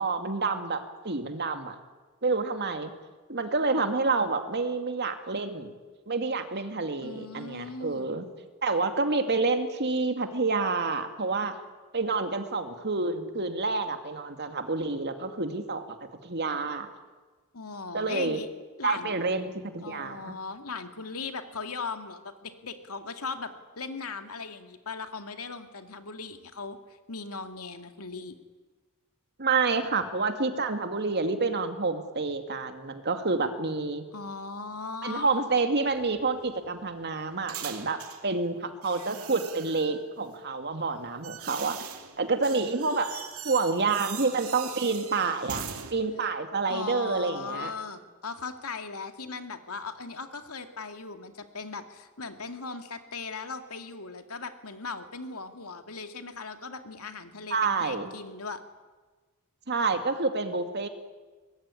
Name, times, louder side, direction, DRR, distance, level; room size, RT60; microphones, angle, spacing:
voice 1, 0.0-1.8 2.2-2.9 3.3-5.7 6.1-8.3 8.6-11.5 11.9-16.0 16.2-16.9 17.9-18.4 18.8-20.3 29.4-34.0 35.0-41.9 42.2-43.2 43.4-45.7 45.9-47.7 57.5-58.1 59.7-60.9, right 3 dB, 50° right, 7 dB, 2.4 m, -28 dB
voice 2, 7.0-8.1 17.5-18.5 18.8-19.2 19.8-26.8 27.1-28.3 34.1-35.4 46.7-58.6, left 4 dB, 85° left, 7 dB, 2.4 m, -38 dB
sound 1, 35.8-38.3 38.8-40.0 40.8-45.9, right 9 dB, 80° right, 2.5 m, -41 dB
23.5 x 20.5 x 9.8 m, 1.3 s
head